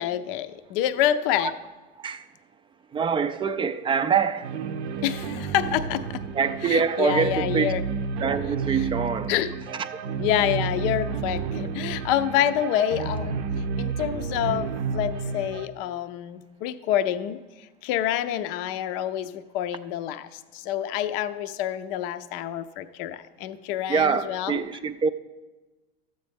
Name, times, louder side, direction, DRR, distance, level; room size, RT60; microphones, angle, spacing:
voice 1, 0.0-1.5 5.0-6.2 6.7-7.8 9.3-9.5 10.2-13.4 13.8-24.6, left 11 dB, 60° left, 0.5 m, -27 dB
voice 2, 2.9-4.5 6.3-7.8 8.2-9.3 23.9-25.1, right 6 dB, 15° right, 0.3 m, -25 dB
sound 1, 4.4-15.7, right 5 dB, 85° right, 0.7 m, -31 dB
13.0 x 7.6 x 3.5 m
supercardioid pair, 110°, 32 cm